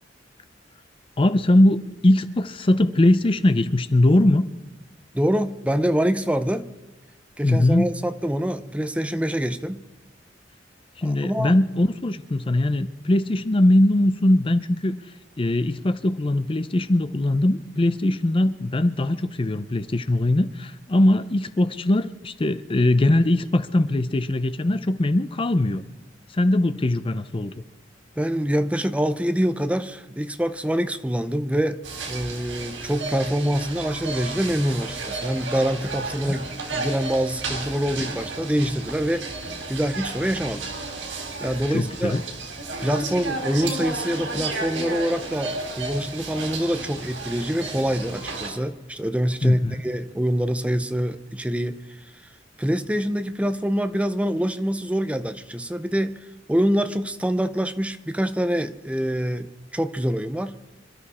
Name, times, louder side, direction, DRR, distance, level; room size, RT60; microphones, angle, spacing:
voice 1, 1.2-4.5 7.4-8.0 11.0-25.8 26.3-27.6 36.3-36.4 41.7-42.2 49.4-49.8, left 1 dB, 30° left, 12 dB, 0.5 m, -21 dB
voice 2, 5.1-6.7 7.4-9.8 11.0-11.5 28.2-31.8 32.1-39.2 39.7-40.6 41.4-42.2 42.8-52.0 52.6-56.2 56.5-60.6, equal, 5° right, 10 dB, 0.7 m, -25 dB
sound 1, 31.8-48.5, right 3 dB, 85° right, 4.1 m, -33 dB
26.5 x 12.5 x 4.3 m, 1.1 s
head